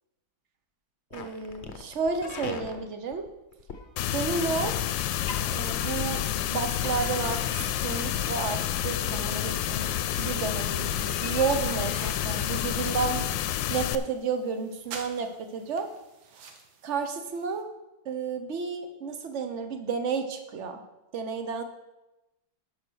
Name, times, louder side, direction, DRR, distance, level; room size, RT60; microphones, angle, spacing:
sound 1, 1.1-12.1, left 5 dB, 50° left, 0.9 m, -43 dB
voice 1, 1.1-3.2 4.1-4.8 5.5-7.5 7.8-13.3 13.7-15.9 16.8-17.7 18.0-20.8 21.1-21.6, right 5 dB, 45° right, 7 dB, 1.0 m, -31 dB
sound 2, 4.0-14.0, left 11 dB, 75° left, 1.2 m, -29 dB
sound 3, 12.5-17.6, right 5 dB, 75° right, 1.8 m, -48 dB
11.5 x 5.4 x 6.3 m, 0.98 s
omnidirectional pair, 2.1 m